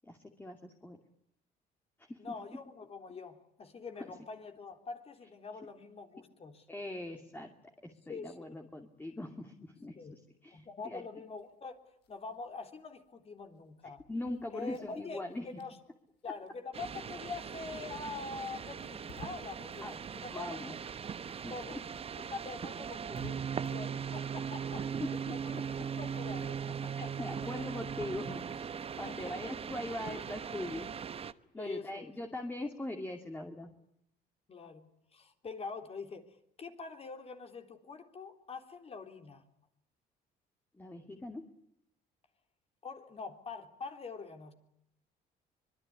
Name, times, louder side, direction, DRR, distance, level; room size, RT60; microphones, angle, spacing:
voice 1, 0.0-1.0 2.0-2.2 6.7-7.5 7.8-11.1 14.1-15.5 19.8-19.9 20.3-20.7 21.3-21.5 24.6-25.6 27.2-28.7 29.0-30.9 31.5-33.7 40.8-41.5, left 1 dB, 10° left, 4 dB, 2.7 m, -41 dB
voice 2, 2.2-6.7 8.1-8.6 10.0-10.1 10.5-11.8 12.1-14.0 14.5-15.8 16.2-20.9 21.5-21.8 22.3-24.8 25.3-27.3 29.1-29.3 31.6-32.1 34.5-39.4 42.8-44.5, left 4 dB, 35° left, 6 dB, 3.6 m, -45 dB
sound 1, 11.2-21.1 21.4-28.4, left 5 dB, 80° left, 6.0 m, -61 dB
sound 2, 16.7-31.3, right 7 dB, 35° right, 1.1 m, -39 dB
25.0 x 22.0 x 9.8 m, 0.76 s
cardioid pair, 110°, 17 cm